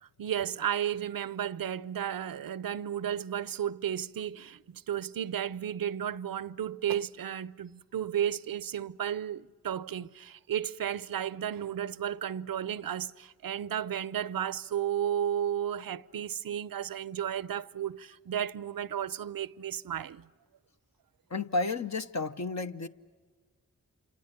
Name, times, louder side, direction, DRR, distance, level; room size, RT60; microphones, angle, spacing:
voice 1, 0.0-20.3, right 9 dB, 80° right, 0.6 m, -33 dB
voice 2, 21.3-22.9, left 3 dB, 55° left, 0.9 m, -32 dB
27.5 x 26.5 x 6.7 m
cardioid pair, 40°, 34 cm